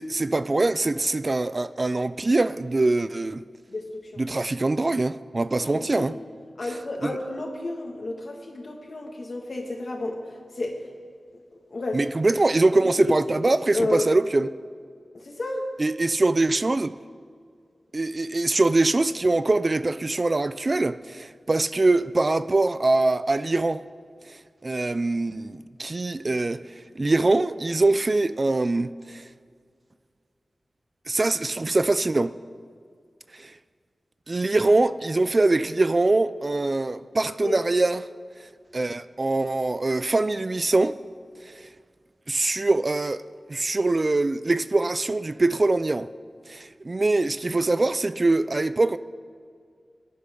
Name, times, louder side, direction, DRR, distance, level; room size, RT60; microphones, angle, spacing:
voice 1, 0.0-3.4 4.2-6.2 7.0-7.2 11.9-14.5 15.8-16.9 17.9-23.8 24.3-24.4 24.6-29.3 31.1-32.4 33.4-33.5 34.3-38.1 38.7-41.0 41.5-41.7 42.3-43.2 43.5-46.1 46.5-49.0, right 2 dB, 40° right, 0.4 m, -23 dB
voice 2, 3.7-4.2 5.6-6.1 6.6-10.2 10.6-10.9 11.7-12.0 13.0-13.4 13.7-14.1 15.1-15.7 37.4-37.6, left 2 dB, 60° left, 2.0 m, -31 dB
21.5 x 10.5 x 3.8 m
wide cardioid pair, 65°, 0 cm